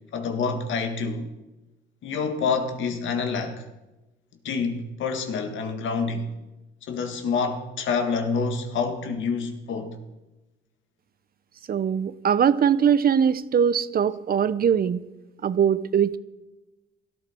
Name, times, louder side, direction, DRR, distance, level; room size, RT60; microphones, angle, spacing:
voice 1, 0.1-1.3 2.0-3.7 4.4-6.3 6.8-10.0, left 5 dB, 75° left, 1.9 m, -27 dB
voice 2, 11.7-15.0 15.4-16.2, right 8 dB, 50° right, 0.8 m, -21 dB
17.5 x 13.5 x 4.5 m
cardioid pair, 90°, 20 cm